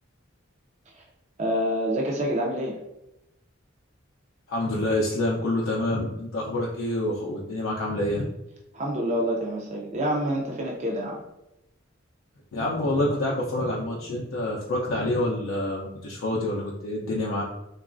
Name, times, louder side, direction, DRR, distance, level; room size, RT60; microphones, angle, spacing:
voice 1, 1.4-2.8 8.7-11.2, equal, 35° right, -2 dB, 0.4 m, -27 dB
voice 2, 4.5-8.2 12.5-17.4, left 1 dB, 75° left, -4 dB, 0.4 m, -27 dB
3.0 x 2.3 x 2.4 m, 0.90 s
head